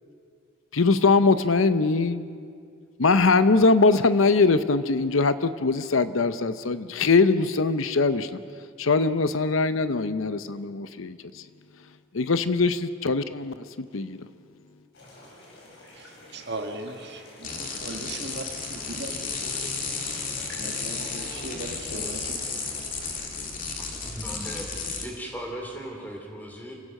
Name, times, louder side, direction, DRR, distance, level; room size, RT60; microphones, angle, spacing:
voice 1, 0.7-2.2 3.0-8.4 8.8-11.4 12.1-14.2, left 3 dB, 80° left, 12 dB, 0.8 m, -22 dB
sound 1, 14.9-23.3, left 1 dB, 60° left, 6.1 m, -47 dB
voice 2, 16.3-17.2 17.5-19.7 20.6-22.7, right 2 dB, 55° right, 5 dB, 1.7 m, -38 dB
sound 2, 17.4-25.0, left 4 dB, 40° left, 2.7 m, -33 dB
voice 3, 23.7-26.8, right 1 dB, 10° left, 1 dB, 3.3 m, -38 dB
28.0 x 16.5 x 6.5 m, 2.2 s
head